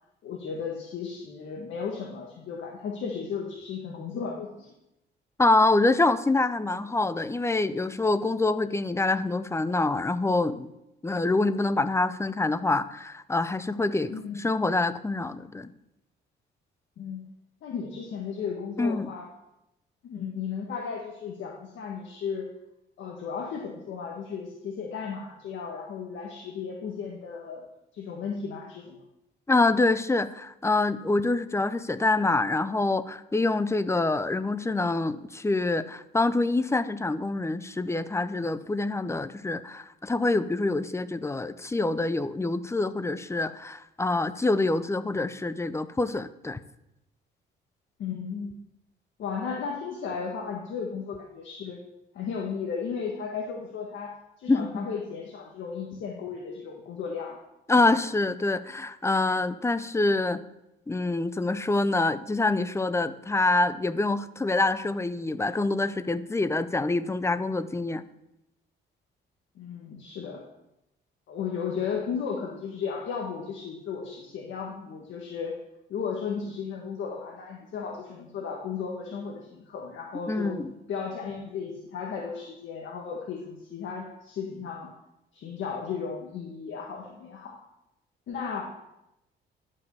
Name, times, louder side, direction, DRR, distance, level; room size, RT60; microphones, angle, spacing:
voice 1, 0.2-4.7 14.1-14.4 17.0-17.2 17.6-19.3 20.0-22.5 23.0-27.6 27.9-29.0 48.0-48.6 49.2-51.8 52.1-57.4 69.5-70.4 71.3-75.6 75.9-80.5 80.9-84.9 85.3-87.6 88.3-88.6, left 6 dB, 75° left, -1 dB, 1.6 m, -35 dB
voice 2, 5.4-10.7 11.0-15.7 18.8-19.1 29.5-46.6 54.5-54.9 57.7-60.4 60.9-68.0 80.3-80.7, left 2 dB, 15° left, 14 dB, 0.6 m, -26 dB
11.5 x 5.5 x 6.8 m, 0.88 s
cardioid pair, 90°, 20 cm